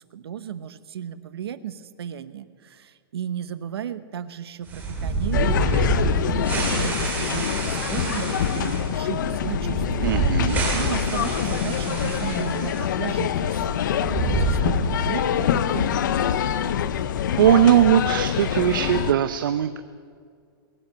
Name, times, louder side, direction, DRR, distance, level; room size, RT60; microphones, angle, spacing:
voice 1, 0.1-5.8 6.3-10.1 10.7-16.3, right 9 dB, 80° right, 13 dB, 1.0 m, -34 dB
sound 1, 4.7-12.9 13.1-13.2 13.9-15.2, right 2 dB, 15° right, 2.3 m, -27 dB
sound 2, 5.3-19.1, left 9 dB, 50° left, 0.7 m, -25 dB
voice 2, 10.0-10.6 17.4-19.8, right 10 dB, 55° right, 11 dB, 0.7 m, -19 dB
21.5 x 8.9 x 6.8 m, 2.1 s
hypercardioid pair, 175°, 13 cm